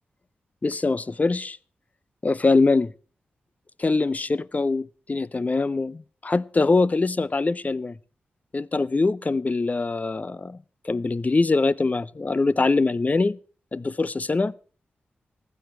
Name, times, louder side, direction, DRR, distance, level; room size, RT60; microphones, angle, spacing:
voice 1, 0.6-1.6 2.2-2.9 3.8-8.0 8.5-10.6 10.8-13.4 13.7-14.5, left 3 dB, 35° left, 0.7 m, -23 dB
15.5 x 10.5 x 4.5 m
supercardioid pair, 40°, 4 cm